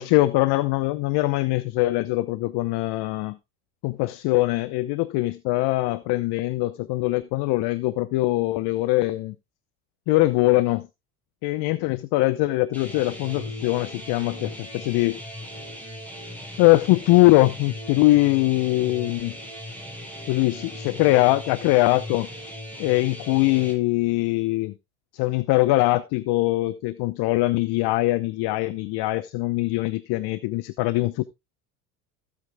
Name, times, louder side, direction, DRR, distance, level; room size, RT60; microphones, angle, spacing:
voice 1, 0.0-3.4 3.8-9.3 10.1-10.9 11.4-15.2 16.6-19.3 20.3-22.3 22.8-24.7 25.1-31.2, left 19 dB, 55° left, 0.9 m, -22 dB
sound 1, 12.7-23.7, equal, 5° left, 7.0 m, -38 dB
15.0 x 8.5 x 2.3 m
hypercardioid pair, 75°, 46 cm